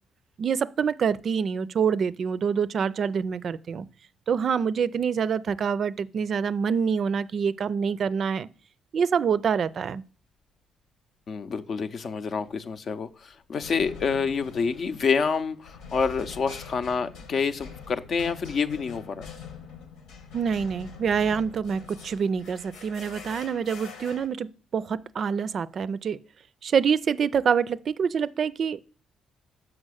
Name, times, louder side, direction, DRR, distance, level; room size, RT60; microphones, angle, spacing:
voice 1, 0.4-3.9 4.3-8.5 8.9-10.0 20.3-26.2 26.6-28.8, right 6 dB, 55° right, 0.4 m, -26 dB
voice 2, 11.3-19.2, left 5 dB, 55° left, 0.6 m, -28 dB
sound 1, 12.5-12.8 13.6-24.3, left 6 dB, 90° left, 1.3 m, -44 dB
6.4 x 5.9 x 6.3 m
cardioid pair, 90°, 0 cm